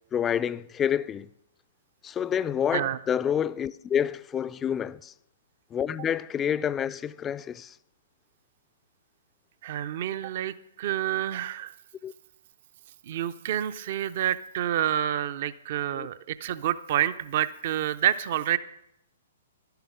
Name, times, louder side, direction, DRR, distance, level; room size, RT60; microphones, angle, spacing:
voice 1, 0.1-1.3 2.0-5.1 5.7-7.7 12.0-12.1 15.9-16.1, left 8 dB, 15° left, 0.3 m, -28 dB
voice 2, 9.6-11.7 13.1-18.6, right 11 dB, 45° right, 0.5 m, -28 dB
12.0 x 10.5 x 5.9 m
figure-of-eight pair, 115°, 0 cm